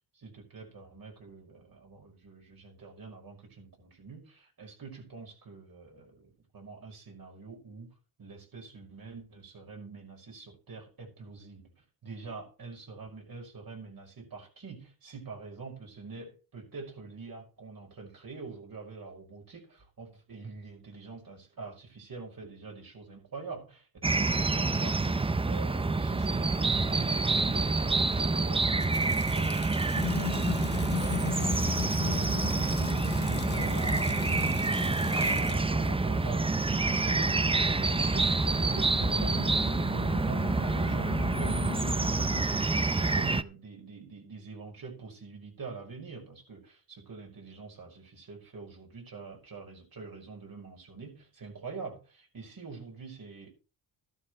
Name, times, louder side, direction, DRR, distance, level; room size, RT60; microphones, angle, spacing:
voice 1, 0.1-11.6 12.0-53.5, right 4 dB, 50° right, 5.8 m, -45 dB
sound 1, 24.0-43.4, right 3 dB, 10° right, 0.5 m, -27 dB
Water tap faucet, 28.6-37.1, left 4 dB, 20° left, 1.3 m, -46 dB
sound 2, 29.9-42.4, left 10 dB, 45° left, 0.6 m, -38 dB
14.0 x 12.5 x 3.2 m
cardioid pair, 95°, 46 cm